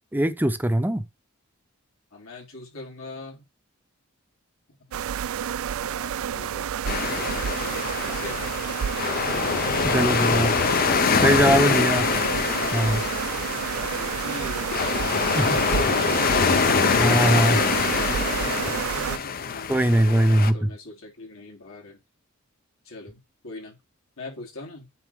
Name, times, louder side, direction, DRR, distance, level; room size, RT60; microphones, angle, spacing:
voice 1, 0.1-1.0 9.8-10.5 11.1-12.1 12.7-13.0 15.4-15.6 17.0-17.6 19.7-20.7, right 1 dB, 10° right, 0.7 m, -21 dB
voice 2, 2.1-3.5 5.7-8.6 12.5-13.0 13.7-16.1 18.4-22.0 22.8-23.8 24.2-24.9, left 3 dB, 80° left, 3.2 m, -42 dB
sound 1, 4.9-19.2, right 8 dB, 75° right, 0.4 m, -29 dB
sound 2, 6.9-20.5, left 6 dB, 45° left, 0.5 m, -24 dB
9.5 x 4.2 x 3.5 m
head